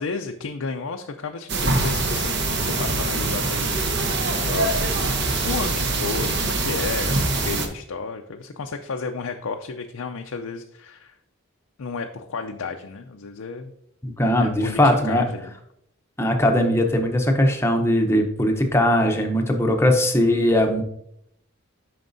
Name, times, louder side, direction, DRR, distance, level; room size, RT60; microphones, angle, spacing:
voice 1, 0.0-3.8 4.4-5.2 5.4-11.2 11.8-13.7 14.4-15.5, left 4 dB, 85° left, 3 dB, 0.5 m, -32 dB
sound 1, 1.5-7.7, right 2 dB, 55° right, 1.0 m, -23 dB
voice 2, 14.2-15.3 16.2-20.8, left 1 dB, 10° left, 4 dB, 0.7 m, -19 dB
9.0 x 5.9 x 2.6 m, 0.75 s
head